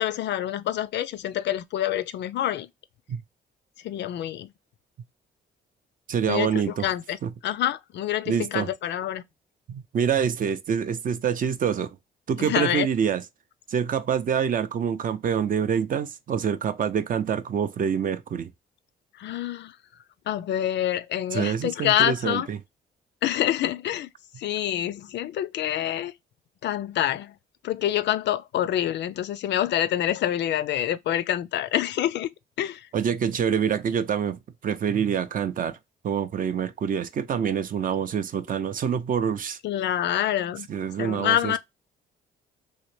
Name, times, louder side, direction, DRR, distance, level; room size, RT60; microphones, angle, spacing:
voice 1, 0.0-2.7 3.8-4.5 6.3-7.2 7.4-9.2 12.4-12.9 19.2-19.7 20.3-22.5 23.2-24.1 24.4-26.1 26.6-27.3 27.6-32.3 32.6-32.8 39.6-40.7 41.0-41.6, left 11 dB, 65° left, 0.4 m, -26 dB
voice 2, 6.1-6.9 7.2-7.3 8.3-8.7 9.7-12.0 12.3-13.2 13.7-18.5 21.3-22.6 32.9-35.8 36.0-39.6 40.7-41.6, right 7 dB, 45° right, 0.4 m, -26 dB
3.0 x 2.9 x 3.1 m
cardioid pair, 90°, 20 cm